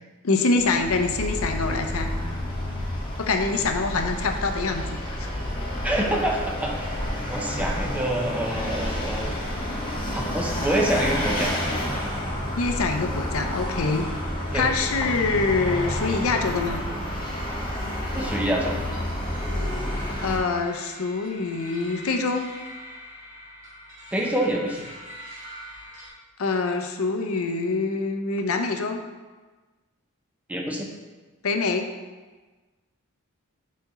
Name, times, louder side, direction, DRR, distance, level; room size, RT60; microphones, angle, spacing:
voice 1, 0.2-2.1 3.2-4.9 5.2-5.3 12.6-14.1 14.5-16.8 20.2-22.5 26.4-29.0 31.4-31.9, left 3 dB, 65° left, 5 dB, 0.6 m, -25 dB
Vehicle, 0.6-20.4, left 1 dB, 20° left, 1.0 m, -29 dB
voice 2, 5.8-7.0 7.3-9.3 10.1-11.5 14.5-14.7 18.1-18.8 24.1-24.9 30.5-30.9, right 1 dB, 5° right, 0 dB, 0.7 m, -26 dB
sound 1, 15.6-26.1, equal, 55° right, 1.9 m, -44 dB
6.0 x 4.2 x 4.1 m, 1.3 s
head